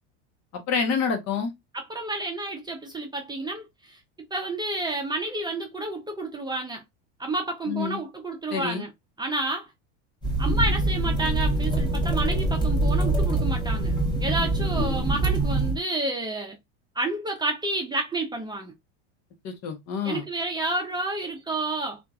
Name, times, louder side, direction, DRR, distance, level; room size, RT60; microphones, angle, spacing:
voice 1, 0.5-1.5 7.7-8.0 8.5-8.8 19.4-20.2, left 6 dB, 50° left, 1.0 m, -27 dB
voice 2, 1.7-4.0 4.3-6.8 7.2-8.9 9.2-9.7 10.4-16.6 16.9-18.7 20.0-22.0, right 2 dB, 10° right, 0.7 m, -30 dB
sound 1, 10.2-15.8, right 2 dB, 10° left, 1.1 m, -24 dB
2.9 x 2.6 x 2.3 m
supercardioid pair, 115°, 34 cm